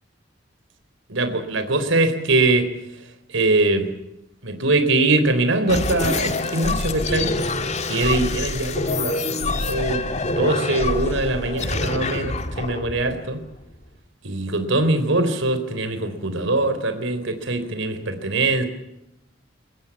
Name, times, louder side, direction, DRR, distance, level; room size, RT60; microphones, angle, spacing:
voice 1, 1.1-2.7 3.3-3.9 4.4-7.3 7.9-10.0 10.4-13.4 14.2-18.6, right 2 dB, 85° right, 9 dB, 3.9 m, -22 dB
sound 1, 5.7-13.9, left 2 dB, 35° left, 2.1 m, -26 dB
24.0 x 21.5 x 7.2 m, 0.87 s
head